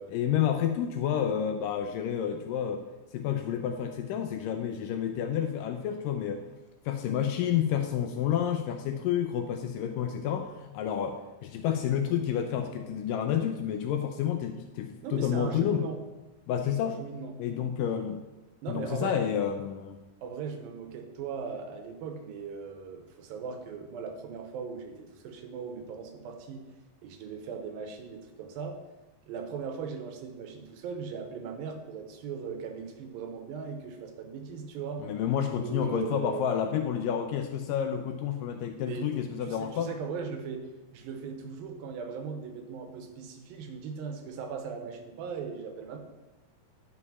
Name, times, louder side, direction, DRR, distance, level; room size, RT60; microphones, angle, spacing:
voice 1, 0.1-2.8 3.1-6.4 6.9-15.9 16.5-17.0 17.4-18.2 18.7-20.0 35.0-39.9, left 9 dB, 80° left, 5 dB, 2.0 m, -30 dB
voice 2, 9.8-10.1 15.0-16.0 16.8-17.4 18.6-19.2 20.2-26.6 27.0-28.8 29.3-35.1 35.6-36.5 38.8-39.1 39.4-46.0, right 6 dB, 75° right, 5 dB, 2.7 m, -39 dB
11.0 x 5.2 x 5.5 m, 1.1 s
omnidirectional pair, 4.3 m